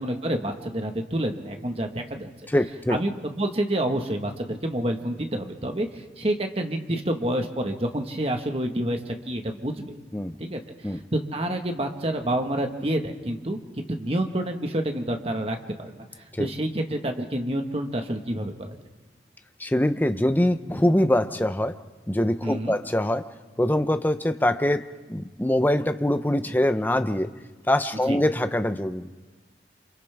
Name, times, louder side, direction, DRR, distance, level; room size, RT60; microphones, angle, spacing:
voice 1, 0.0-2.3 2.9-10.0 10.4-16.0 16.4-18.8 22.4-22.7 28.0-28.2, right 1 dB, 35° right, 4 dB, 1.5 m, -28 dB
voice 2, 2.5-3.0 10.1-10.4 10.8-11.0 16.3-16.5 19.6-21.7 22.1-23.3 23.6-27.3 27.7-29.1, left 1 dB, 10° left, 9 dB, 0.7 m, -23 dB
28.0 x 27.5 x 3.5 m, 1.3 s
head